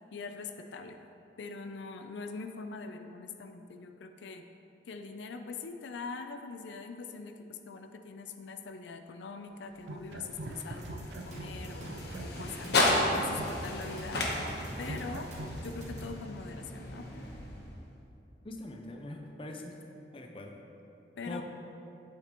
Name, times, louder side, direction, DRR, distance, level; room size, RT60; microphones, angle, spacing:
voice 1, 0.1-1.0 1.4-4.4 4.9-11.9 12.2-14.2 14.8-15.3 15.6-17.1 21.2-21.4, left 4 dB, 85° left, 6 dB, 0.4 m, -43 dB
sound 1, 9.7-18.0, left 1 dB, 65° left, 1.1 m, -34 dB
sound 2, 9.8-11.6 11.8-15.6, right 2 dB, 80° right, 0.5 m, -43 dB
sound 3, 10.8-16.1, equal, 40° right, 1.3 m, -44 dB
voice 2, 18.4-19.8 20.1-20.5 21.3-21.4, left 1 dB, 30° left, 2 dB, 0.6 m, -42 dB
8.6 x 8.3 x 3.0 m, 2.9 s
head